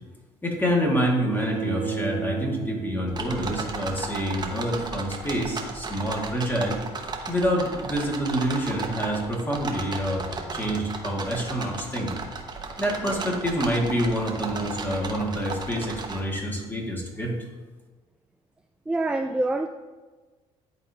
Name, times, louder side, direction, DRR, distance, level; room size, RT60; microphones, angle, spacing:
voice 1, 0.4-6.8 7.3-10.2 10.5-12.1 12.8-17.4, equal, 15° left, -1 dB, 1.9 m, -27 dB
Bowed string instrument, 1.3-4.4, right 6 dB, 75° right, 0.5 m, -34 dB
sound 1, 3.1-16.2, right 4 dB, 35° right, 1.0 m, -35 dB
voice 2, 18.9-19.7, right 2 dB, 10° right, 6 dB, 0.3 m, -25 dB
10.5 x 4.0 x 2.8 m, 1.3 s
supercardioid pair, 75°, 12 cm